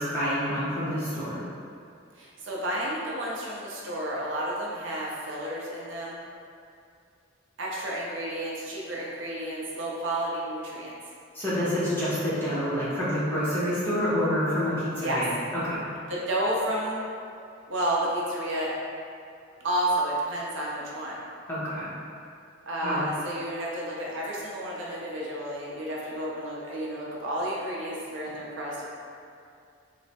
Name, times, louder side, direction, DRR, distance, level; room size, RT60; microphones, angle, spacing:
voice 1, 0.0-1.4 11.3-15.3 15.6-15.8 21.5-21.9 22.8-23.0, equal, 10° left, -12 dB, 0.8 m, -27 dB
voice 2, 2.2-6.2 7.6-10.9 15.0-15.2 16.1-17.0 17.7-18.7 19.6-21.2 22.7-28.8, right 1 dB, 70° right, -4 dB, 0.6 m, -31 dB
3.2 x 2.0 x 4.0 m, 2.4 s
head